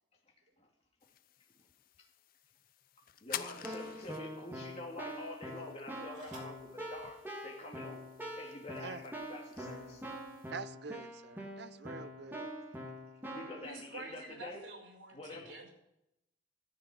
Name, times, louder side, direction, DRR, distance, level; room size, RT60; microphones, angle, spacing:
sound 1, 1.0-10.5, left 10 dB, 50° left, 0.5 m, -51 dB
sound 2, 1.9-3.1 3.9-4.0 5.6-6.7 7.8-7.9 8.2-8.6, right 3 dB, 45° right, 3.3 m, -62 dB
voice 1, 3.2-8.0 8.4-10.0 13.3-14.6 15.1-15.6, left 2 dB, 35° left, 2.2 m, -47 dB
Keyboard (musical), 3.3-13.6, equal, 10° right, 2.2 m, -45 dB
voice 2, 10.5-12.5, right 5 dB, 60° right, 0.6 m, -45 dB
voice 3, 13.6-15.7, right 2 dB, 75° right, 5.5 m, -48 dB
14.0 x 5.9 x 9.2 m
head